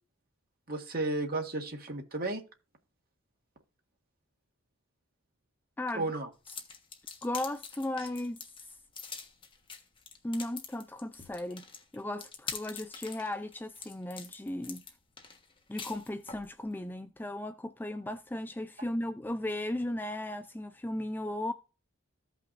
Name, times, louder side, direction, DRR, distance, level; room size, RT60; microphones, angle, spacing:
voice 1, 0.7-2.4 5.9-6.3, right 2 dB, 45° right, 1.6 m, -33 dB
sound 1, 6.4-16.5, left 6 dB, 25° left, 1.3 m, -45 dB
voice 2, 7.2-8.4 10.2-11.6 11.9-14.8 15.7-21.5, left 1 dB, 10° left, 0.3 m, -36 dB
15.0 x 5.8 x 2.5 m
head